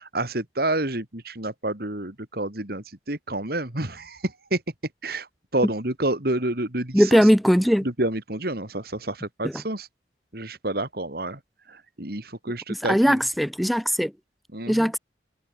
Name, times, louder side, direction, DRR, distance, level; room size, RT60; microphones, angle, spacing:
voice 1, 0.0-4.6 5.0-7.3 7.8-9.9 10.3-11.4 11.7-13.2 14.5-14.9, right 1 dB, 55° right, 3.2 m, -29 dB
voice 2, 6.9-7.9 9.4-9.5 12.9-14.1 14.7-15.0, equal, ahead, 1.8 m, -19 dB
head